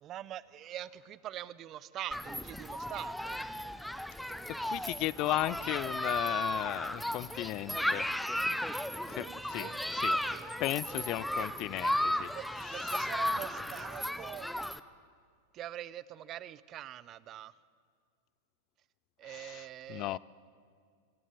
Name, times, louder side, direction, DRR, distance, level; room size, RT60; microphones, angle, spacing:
voice 1, 0.0-3.4 9.2-10.6 10.9-11.1 11.4-11.5 12.3-14.5 15.5-17.5 19.2-20.2, right 12 dB, 40° right, 0.8 m, -44 dB
Human group actions, 2.1-14.8, left 1 dB, ahead, 0.8 m, -35 dB
voice 2, 4.6-8.1 9.1-9.7 9.9-10.2 10.6-12.3 12.9-13.0 19.2-20.2, left 17 dB, 45° left, 0.5 m, -35 dB
23.5 x 17.5 x 8.4 m
hypercardioid pair, 105°, 0 cm